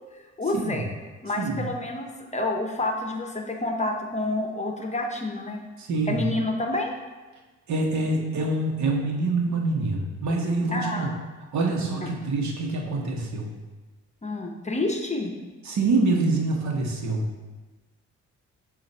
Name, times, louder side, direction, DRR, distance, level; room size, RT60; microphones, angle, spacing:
voice 1, 0.4-0.9 1.2-5.6 6.1-6.9 10.7-11.1 14.2-15.3, left 2 dB, 25° left, 2 dB, 0.7 m, -28 dB
voice 2, 5.8-6.3 7.7-11.2 11.5-13.5 15.6-17.2, right 3 dB, 65° right, 0 dB, 1.1 m, -25 dB
6.8 x 2.5 x 5.4 m, 1.3 s
cardioid pair, 90°, 30 cm